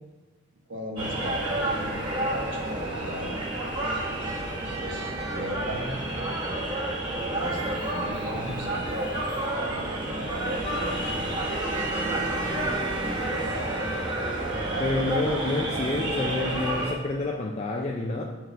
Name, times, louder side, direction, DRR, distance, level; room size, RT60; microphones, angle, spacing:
voice 1, 0.7-2.1 2.3-3.4 4.8-6.0 7.3-9.1 9.7-11.3, equal, 60° right, 0 dB, 1.2 m, -37 dB
sound 1, 1.0-16.9, right 1 dB, 25° right, 1.2 m, -29 dB
voice 2, 14.8-18.2, left 2 dB, 30° left, -1 dB, 0.5 m, -28 dB
6.5 x 4.8 x 4.5 m, 1.2 s
head